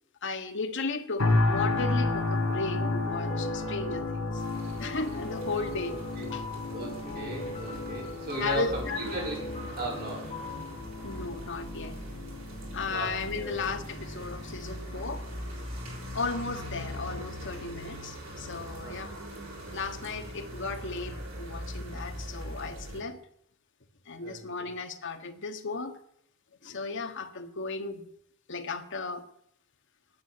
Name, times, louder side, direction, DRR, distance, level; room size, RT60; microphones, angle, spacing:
voice 1, 0.2-4.1 4.3-4.4 4.8-6.0 6.3-6.4 8.4-9.2 11.0-12.0 12.7-15.2 16.1-19.2 19.7-23.2 24.1-26.0 26.6-28.0 28.5-29.2, left 3 dB, 60° left, 6 dB, 1.4 m, -35 dB
sound 1, 1.2-16.2 16.7-16.9, left 2 dB, 90° left, 2.2 m, -33 dB
sound 2, 2.8-12.1, left 1 dB, 30° left, 4.9 m, -41 dB
sound 3, 4.4-23.0, equal, 80° right, 5.9 m, -41 dB
voice 2, 5.9-10.3 12.9-13.7 18.8-19.1 24.2-24.7, right 1 dB, 50° right, -3 dB, 6.4 m, -37 dB
9.4 x 8.3 x 9.7 m, 0.70 s
head